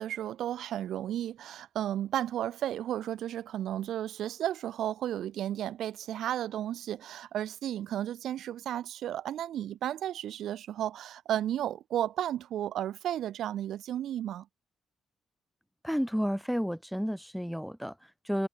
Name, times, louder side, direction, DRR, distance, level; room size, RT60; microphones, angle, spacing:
voice 1, 0.0-14.4, right 11 dB, 75° right, 5.1 m, -33 dB
voice 2, 15.8-18.5, equal, ahead, 6.9 m, -31 dB
cardioid pair, 90°, 0 cm